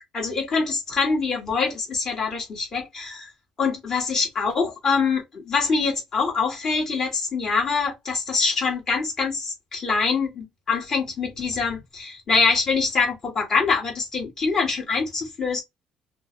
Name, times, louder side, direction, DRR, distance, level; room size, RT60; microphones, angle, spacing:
voice 1, 0.0-3.3 3.6-15.6, left 4 dB, 25° left, 1.5 m, -24 dB
5.2 x 2.0 x 2.6 m
cardioid pair, 175°, 2 cm